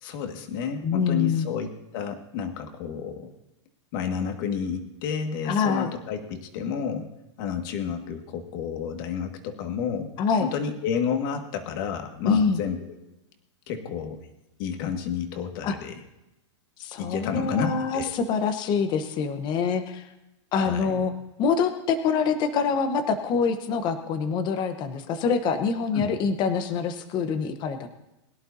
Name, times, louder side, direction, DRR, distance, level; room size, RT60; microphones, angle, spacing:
voice 1, 0.0-3.3 3.9-7.1 7.4-10.1 10.4-12.9 13.7-14.2 14.6-16.0 17.0-18.1 20.5-21.0 25.9-26.1, left 7 dB, 50° left, 5 dB, 1.9 m, -30 dB
voice 2, 0.8-1.5 5.4-5.9 10.2-10.5 12.3-12.6 15.6-15.8 16.8-20.1 20.5-21.1 21.4-27.9, left 5 dB, 30° left, 9 dB, 1.0 m, -25 dB
22.0 x 11.5 x 2.8 m, 0.93 s
supercardioid pair, 150°, 15 cm